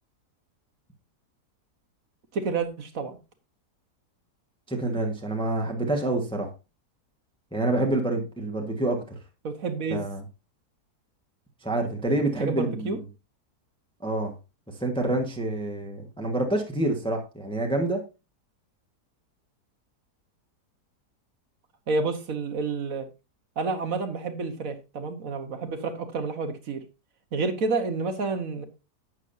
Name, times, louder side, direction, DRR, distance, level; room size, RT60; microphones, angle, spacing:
voice 1, 2.3-3.2 9.4-10.0 12.4-13.0 21.9-23.0 23.6-26.8 27.3-28.7, right 4 dB, 60° right, 1.6 m, -29 dB
voice 2, 4.7-6.5 7.5-9.2 9.9-10.2 11.6-13.0 14.0-14.3 14.8-18.0, right 2 dB, 5° left, 1.4 m, -27 dB
11.0 x 8.5 x 2.7 m
omnidirectional pair, 1.7 m